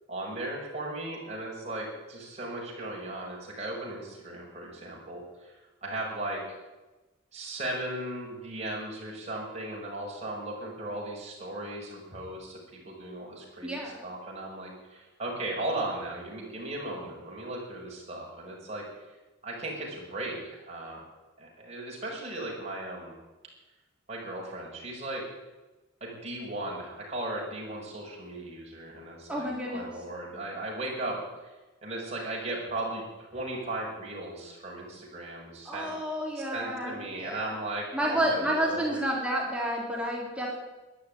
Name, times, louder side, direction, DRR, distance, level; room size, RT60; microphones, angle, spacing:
voice 1, 0.1-5.5 5.8-6.6 7.3-19.2 19.4-21.0 21.4-23.1 24.1-25.2 26.0-31.6 31.8-35.9 36.4-39.0, right 1 dB, 30° right, -3 dB, 5.6 m, -37 dB
voice 2, 13.6-14.0 29.3-29.9 35.7-37.5 37.9-40.6, right 1 dB, 5° right, -2 dB, 3.6 m, -30 dB
13.5 x 11.5 x 9.3 m, 1.1 s
head